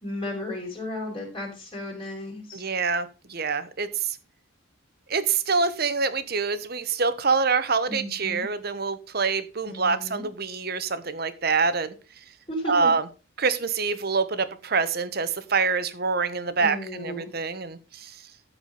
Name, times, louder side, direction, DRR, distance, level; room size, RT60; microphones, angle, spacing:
voice 1, 0.0-2.6 7.9-8.5 9.7-10.3 12.5-12.9 16.6-17.3, left 1 dB, 25° left, -6 dB, 4.7 m, -34 dB
voice 2, 2.5-4.2 5.1-11.9 12.7-13.0 13.4-18.1, right 4 dB, 50° right, 12 dB, 1.1 m, -26 dB
13.5 x 4.9 x 5.5 m, 0.33 s
head